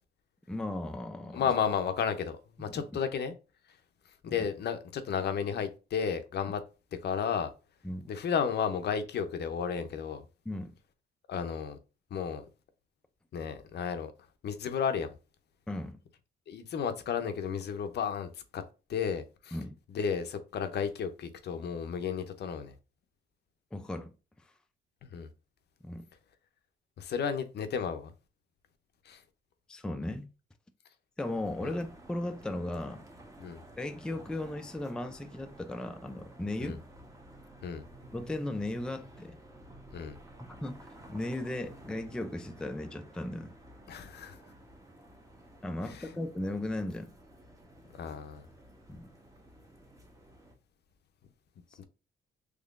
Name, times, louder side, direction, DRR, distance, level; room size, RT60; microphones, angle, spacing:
voice 1, 0.5-1.5 2.6-2.9 4.3-4.5 7.8-8.1 10.5-10.7 15.7-16.0 19.5-19.8 23.7-24.1 25.8-26.0 29.7-30.3 31.2-33.0 33.8-36.8 38.1-39.4 40.4-43.5 45.6-47.1 48.9-49.1, left 1 dB, 5° left, 0.4 m, -36 dB
voice 2, 1.3-3.3 4.2-6.6 7.0-7.5 8.1-10.2 11.3-11.8 12.1-12.4 13.3-14.1 14.4-15.1 16.5-18.6 18.9-19.6 19.9-22.7 25.0-25.3 27.0-28.1 29.1-29.2 31.6-31.8 33.4-33.6 36.6-36.8 37.6-37.8 39.9-40.2 43.9-44.4 45.9-46.1 47.9-48.5 51.8-51.9, left 7 dB, 60° left, 0.6 m, -33 dB
sound 1, 31.3-50.5, right 1 dB, 15° right, 0.8 m, -53 dB
3.6 x 3.2 x 2.4 m
cardioid pair, 90°, 20 cm